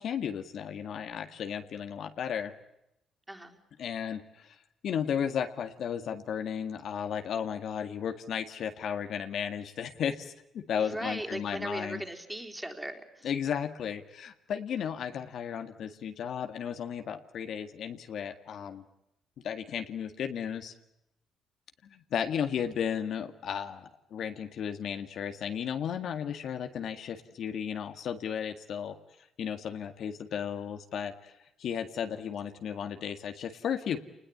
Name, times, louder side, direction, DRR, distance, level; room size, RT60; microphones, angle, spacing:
voice 1, 0.0-2.5 3.8-4.6 4.8-12.0 13.2-18.8 19.4-20.7 21.9-29.0 29.4-31.3 31.6-34.0, left 8 dB, 70° left, 7 dB, 1.9 m, -34 dB
voice 2, 3.3-3.6 10.7-13.3, right 1 dB, 10° right, 4 dB, 3.8 m, -38 dB
28.5 x 20.5 x 8.6 m, 0.85 s
cardioid pair, 90°, 0 cm